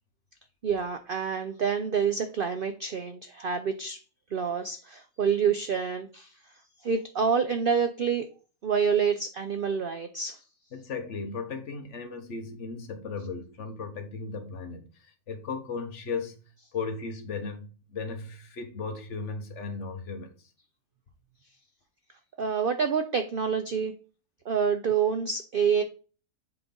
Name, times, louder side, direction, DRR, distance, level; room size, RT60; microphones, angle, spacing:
voice 1, 0.6-4.0 4.3-6.3 6.8-8.3 8.6-10.4 22.4-23.9 24.5-25.8, right 6 dB, 85° right, 0.4 m, -27 dB
voice 2, 10.7-16.4 16.7-20.5, left 4 dB, 50° left, 1.3 m, -36 dB
7.6 x 4.1 x 3.8 m
omnidirectional pair, 1.6 m